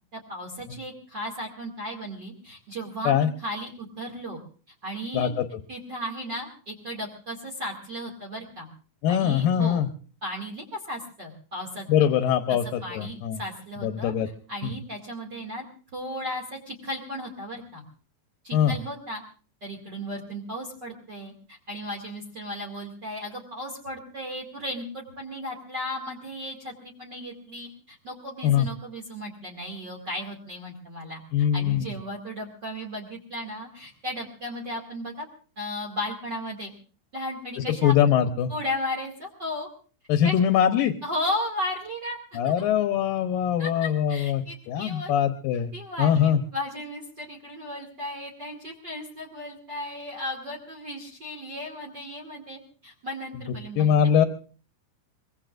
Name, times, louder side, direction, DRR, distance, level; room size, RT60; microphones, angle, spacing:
voice 1, 0.1-4.4 4.8-5.3 5.7-8.7 9.1-9.8 10.2-11.9 12.5-14.1 14.5-15.6 15.9-17.8 18.4-19.2 19.6-35.3 35.6-36.7 37.1-37.9 38.5-39.7 40.2-40.4 41.0-42.6 43.6-45.1 45.7-53.9, left 1 dB, 35° right, 1 dB, 2.4 m, -35 dB
voice 2, 5.1-5.5 9.0-9.9 11.9-13.4 13.8-14.3 14.6-14.7 18.5-18.8 28.4-28.7 31.3-31.9 37.7-38.5 40.1-40.9 42.4-45.7 46.0-46.4 53.8-54.3, left 9 dB, 75° left, 7 dB, 2.4 m, -22 dB
24.0 x 21.5 x 2.5 m, 0.40 s
omnidirectional pair, 4.4 m